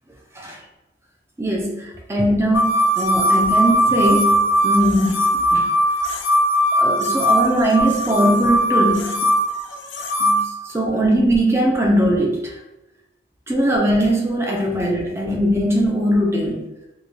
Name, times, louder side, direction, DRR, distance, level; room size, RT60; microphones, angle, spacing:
voice 1, 1.4-5.7 6.7-9.3 10.2-12.6 13.5-16.7, equal, 15° right, -1 dB, 0.5 m, -20 dB
sound 1, 2.5-10.4, equal, 90° left, 0.5 m, -19 dB
4.7 x 2.2 x 2.6 m, 0.98 s
head